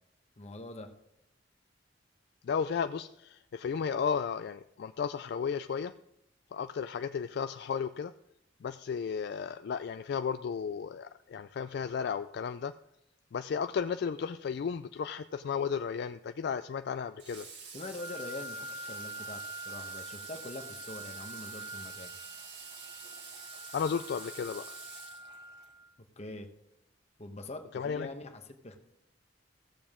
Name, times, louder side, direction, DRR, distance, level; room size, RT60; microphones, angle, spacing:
voice 1, 0.4-0.9 17.7-22.1 26.2-26.5 27.2-28.8, left 2 dB, 35° left, 6 dB, 1.0 m, -44 dB
voice 2, 2.4-5.9 6.5-8.1 8.6-12.7 13.3-17.5 23.7-24.6 27.7-28.1, left 6 dB, 60° left, 10 dB, 0.3 m, -34 dB
Water / Water tap faucet, 17.2-25.7, right 5 dB, 65° right, 2.0 m, -48 dB
Wind instrument woodwind instrument, 18.0-25.9, right 1 dB, 20° right, 0.4 m, -45 dB
16.0 x 7.1 x 3.6 m, 0.80 s
head